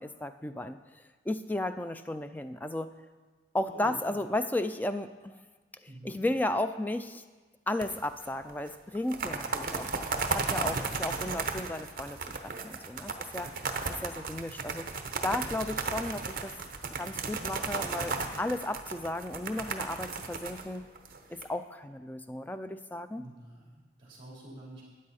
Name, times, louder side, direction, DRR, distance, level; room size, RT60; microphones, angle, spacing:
voice 1, 0.0-2.9 3.5-5.4 6.0-7.2 7.7-12.2 12.4-13.5 13.9-14.9 15.2-16.5 17.0-20.9 21.3-23.3, left 1 dB, 10° left, 10 dB, 0.3 m, -34 dB
voice 2, 3.7-4.2 5.9-6.2 9.2-9.5 23.1-24.8, right 1 dB, 30° right, -5 dB, 3.5 m, -48 dB
sound 1, 7.8-8.2 8.5-8.6 8.9-21.4, right 4 dB, 50° right, 0.8 m, -35 dB
12.5 x 9.4 x 4.2 m, 1.3 s
head